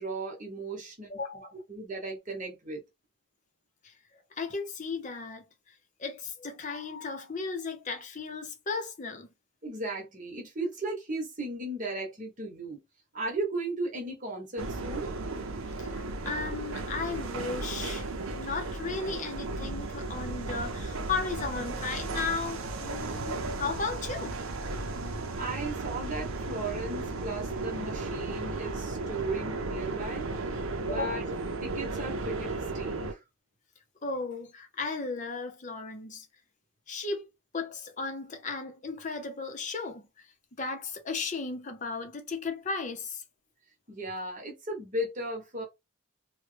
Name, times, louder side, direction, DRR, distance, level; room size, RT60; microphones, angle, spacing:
voice 1, 0.0-1.1 1.7-2.8 9.6-12.8 13.1-15.1 25.4-31.3 31.6-33.2 43.9-45.6, right 2 dB, 35° right, 1.0 m, -36 dB
voice 2, 1.1-1.5 3.8-3.9 4.3-9.3 15.8-18.1 18.3-24.4 30.9-31.2 34.0-36.3 36.9-37.2 37.5-40.3 40.6-43.2, left 4 dB, 35° left, 0.6 m, -35 dB
sound 1, 14.6-33.1, right 3 dB, 75° right, 0.6 m, -35 dB
3.0 x 2.2 x 3.2 m
head